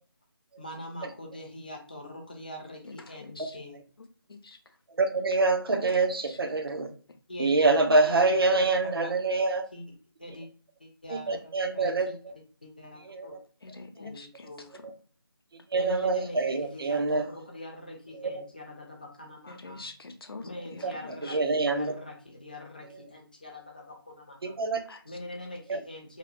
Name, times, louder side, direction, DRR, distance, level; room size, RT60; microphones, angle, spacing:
voice 1, 0.6-3.8 7.3-8.2 8.5-9.1 9.7-9.8 10.2-10.5 10.8-12.2 12.6-13.4 14.0-14.7 15.7-19.8 20.4-24.6 25.0-26.2, left 1 dB, 20° left, 2 dB, 0.3 m, -43 dB
voice 2, 2.8-3.6 4.0-4.6 5.7-6.0 6.2-6.4 6.7-6.9 13.6-14.9 19.5-21.4 24.9-25.2, left 3 dB, 70° left, 7 dB, 0.5 m, -46 dB
voice 3, 5.0-6.9 7.4-9.6 11.1-12.1 13.1-13.4 15.7-17.2 20.8-20.9 21.3-21.9 24.4-24.8 25.7-25.8, right 3 dB, 70° right, 6 dB, 0.5 m, -25 dB
2.8 x 2.1 x 2.4 m, 0.42 s
figure-of-eight pair, 165°, 13 cm